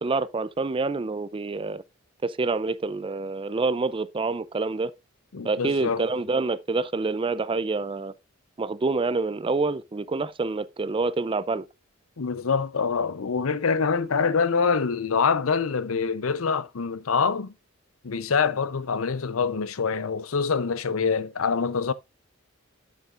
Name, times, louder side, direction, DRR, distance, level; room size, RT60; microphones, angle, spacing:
voice 1, 0.0-1.8 2.2-4.9 5.4-8.1 8.6-11.7, right 3 dB, 25° right, 0.4 m, -27 dB
voice 2, 5.3-6.0 12.2-17.5 18.0-21.9, left 5 dB, 90° left, 0.7 m, -25 dB
10.0 x 7.3 x 2.5 m
head